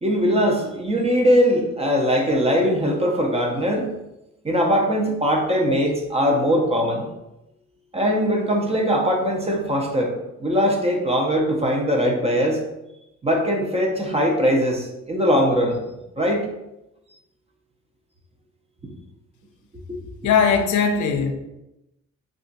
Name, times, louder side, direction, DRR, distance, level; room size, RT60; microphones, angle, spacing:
voice 1, 0.0-3.9 4.4-7.1 7.9-10.1 10.4-12.6 13.2-15.8 16.2-16.5 19.9-20.0, equal, 20° right, 1 dB, 0.6 m, -21 dB
voice 2, 20.2-21.3, left 6 dB, 75° left, 4 dB, 0.5 m, -19 dB
2.4 x 2.4 x 3.9 m, 0.92 s
cardioid pair, 90°, 30 cm